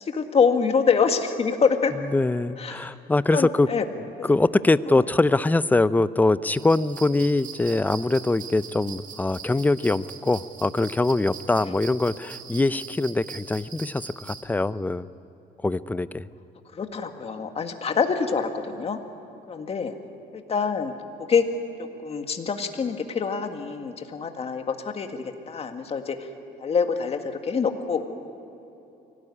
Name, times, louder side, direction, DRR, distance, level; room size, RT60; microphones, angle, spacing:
voice 1, 0.0-1.9 2.6-2.9 3.3-3.8 4.2-4.3 4.9-5.0 11.6-11.7 16.7-19.0 19.5-19.9 20.3-20.9 21.2-21.5 21.8-26.2 26.6-28.0, left 5 dB, 35° left, 6 dB, 1.9 m, -25 dB
voice 2, 2.1-3.7 4.2-15.1 15.6-16.3, left 2 dB, 10° left, 16 dB, 0.5 m, -23 dB
sound 1, 6.5-14.4, right 7 dB, 50° right, 2.2 m, -42 dB
24.5 x 17.5 x 9.8 m, 2.9 s
cardioid pair, 110°, 17 cm